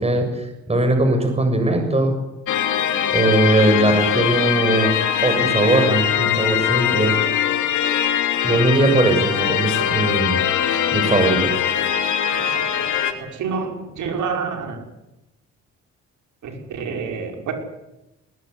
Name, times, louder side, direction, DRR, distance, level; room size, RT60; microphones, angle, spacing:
voice 1, 0.0-2.2 3.1-4.9 5.2-7.2 8.4-10.4 10.9-11.5, right 2 dB, 20° right, 6 dB, 7.5 m, -19 dB
sound 1, 2.5-13.1, left 9 dB, 80° left, 3.2 m, -21 dB
voice 2, 13.1-14.8 16.4-17.5, right 5 dB, 75° right, 3 dB, 6.1 m, -28 dB
21.0 x 20.0 x 9.9 m, 0.95 s
cardioid pair, 90°, 30 cm